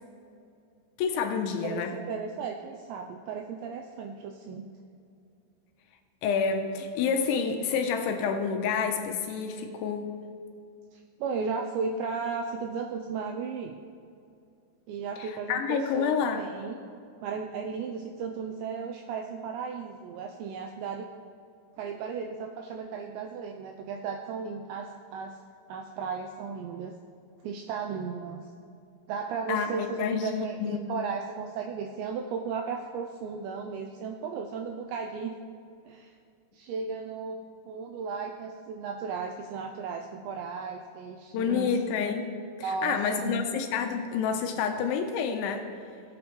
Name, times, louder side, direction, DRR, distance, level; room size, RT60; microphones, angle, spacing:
voice 1, 1.0-2.0 6.2-10.2 15.2-16.4 29.5-31.0 41.3-45.7, left 6 dB, 80° left, 5 dB, 2.9 m, -29 dB
voice 2, 1.6-4.7 10.9-13.8 14.9-16.8 17.2-21.1 21.8-25.4 25.7-26.9 27.4-28.4 29.1-35.4 35.9-36.1 36.5-37.4 37.7-41.7 42.6-43.5, right 5 dB, 90° right, 3 dB, 2.5 m, -35 dB
18.0 x 8.4 x 3.1 m, 2.5 s
omnidirectional pair, 5.7 m